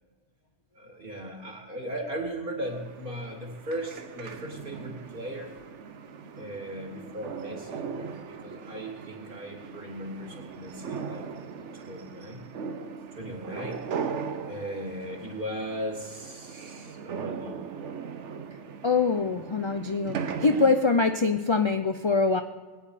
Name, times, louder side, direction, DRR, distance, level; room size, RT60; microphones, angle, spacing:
voice 1, 0.7-5.5 6.4-11.5 11.8-12.4 13.1-13.9 14.4-17.8, equal, 45° right, 1 dB, 2.5 m, -37 dB
sound 1, 2.6-20.8, right 6 dB, 85° right, 1.2 m, -39 dB
voice 2, 18.8-22.4, left 4 dB, 35° left, 6 dB, 0.5 m, -24 dB
21.0 x 9.6 x 5.0 m, 1.5 s
omnidirectional pair, 1.2 m